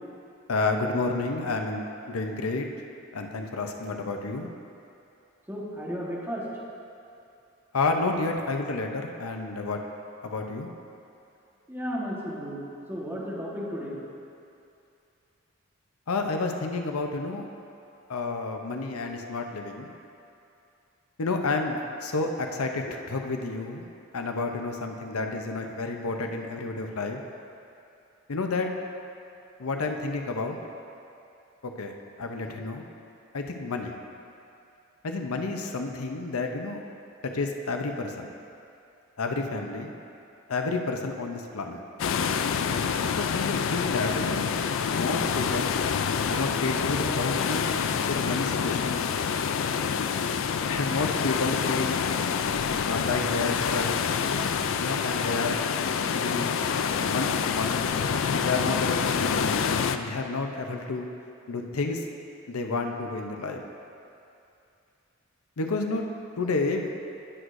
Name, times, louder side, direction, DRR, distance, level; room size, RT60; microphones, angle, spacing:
voice 1, 0.5-2.7 3.1-4.5 7.7-9.8 10.2-10.7 16.1-17.4 18.1-19.9 21.2-23.9 24.1-27.2 28.3-28.7 29.6-30.6 31.6-32.8 33.3-34.0 35.0-36.8 37.2-38.3 39.2-39.9 40.5-41.8 43.1-44.4 44.9-45.7 46.2-47.6 48.0-49.0 50.7-52.0 52.8-53.9 54.8-55.6 56.1-56.5 57.0-57.8 58.3-61.1 61.5-62.0 62.5-63.6 65.6-66.0 66.4-66.9, left 3 dB, 85° left, 3 dB, 0.7 m, -30 dB
voice 2, 5.5-6.4 6.7-6.8 11.7-14.0, equal, 10° right, -6 dB, 1.3 m, -34 dB
sound 1, 42.0-60.0, left 6 dB, 60° left, 0.3 m, -27 dB
17.5 x 6.3 x 2.6 m, 2.6 s
head